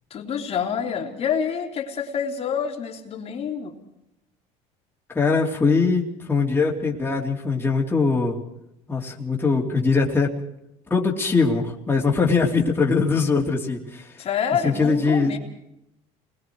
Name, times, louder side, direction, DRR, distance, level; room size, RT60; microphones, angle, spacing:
voice 1, 0.1-3.8 14.2-15.4, left 7 dB, 40° left, 1 dB, 3.2 m, -27 dB
voice 2, 5.1-8.4 8.9-10.3 10.9-14.2 14.6-15.4, left 4 dB, 15° left, -2 dB, 3.0 m, -22 dB
28.5 x 21.0 x 4.7 m, 0.83 s
cardioid pair, 120°, 15 cm